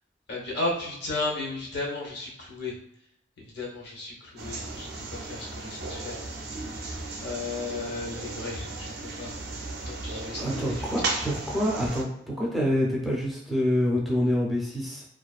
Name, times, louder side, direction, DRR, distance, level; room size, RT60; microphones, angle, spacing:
voice 1, 0.3-2.7 3.4-6.2 7.2-9.4 9.9-11.3, left 2 dB, 65° left, -1 dB, 0.8 m, -34 dB
sound 1, 4.4-12.0, right 3 dB, 60° right, 0.4 m, -35 dB
voice 2, 10.4-15.0, equal, ahead, -4 dB, 0.5 m, -27 dB
2.4 x 2.3 x 2.3 m, 0.77 s
head